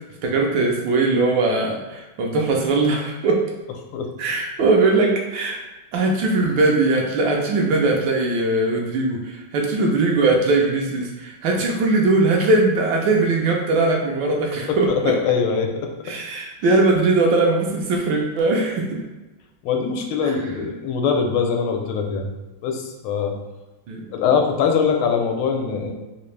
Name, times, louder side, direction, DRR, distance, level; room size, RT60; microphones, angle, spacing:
voice 1, 0.2-3.4 4.2-5.6 5.9-15.1 16.1-19.0 20.2-20.3 23.9-24.1, right 3 dB, 70° right, 0 dB, 1.2 m, -20 dB
voice 2, 14.7-15.7 19.6-22.3 22.6-23.3 24.1-25.9, left 6 dB, 85° left, 2 dB, 1.5 m, -22 dB
3.8 x 2.5 x 3.1 m, 1.1 s
omnidirectional pair, 2.3 m